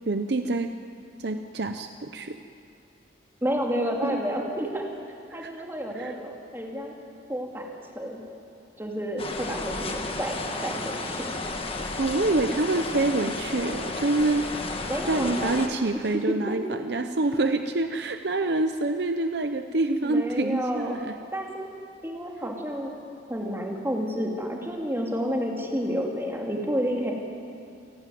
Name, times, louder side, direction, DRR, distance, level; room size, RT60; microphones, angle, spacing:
voice 1, 0.1-0.7 1.2-2.4 4.0-4.2 5.3-5.5 5.9-6.2 12.0-14.5 15.0-21.1, right 2 dB, 60° right, 7 dB, 0.8 m, -26 dB
voice 2, 3.4-4.8 5.3-6.9 7.3-7.7 7.9-8.2 8.8-10.4 10.6-11.3 14.9-15.5 16.5-16.8 20.0-21.7 22.0-22.9 23.3-27.1, equal, 10° right, -1 dB, 2.6 m, -30 dB
sound 1, 9.2-15.7, left 2 dB, 30° left, 1.5 m, -32 dB
29.0 x 12.0 x 9.3 m, 2.5 s
head